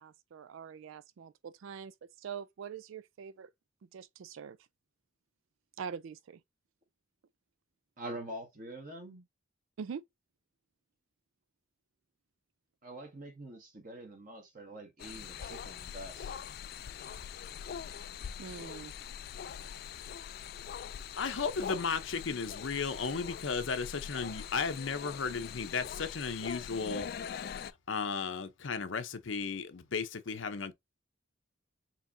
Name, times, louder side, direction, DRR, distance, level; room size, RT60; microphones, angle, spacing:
voice 1, 0.0-3.5 3.9-4.6 5.8-6.4 9.8-10.0 18.4-18.9, right 7 dB, 85° right, 0.4 m, -44 dB
voice 2, 8.0-9.2 12.8-16.4, right 1 dB, 45° right, 1.6 m, -45 dB
sound 1, 15.0-27.7, left 8 dB, 50° left, 0.3 m, -43 dB
voice 3, 21.2-27.1 27.9-30.7, left 5 dB, 75° left, 0.7 m, -35 dB
4.6 x 3.0 x 2.6 m
head